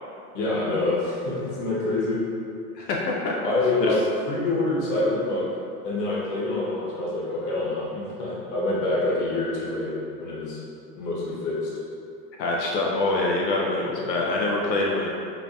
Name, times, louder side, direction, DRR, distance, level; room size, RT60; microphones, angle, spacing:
voice 1, 0.3-2.2 3.4-5.5 5.8-10.6 10.9-11.7 13.8-14.1, left 2 dB, 40° left, -6 dB, 1.2 m, -26 dB
voice 2, 2.8-3.3 3.8-3.9 12.4-15.1, left 2 dB, 90° left, -2 dB, 0.7 m, -25 dB
5.0 x 2.3 x 2.5 m, 2.6 s
hypercardioid pair, 100°, 49 cm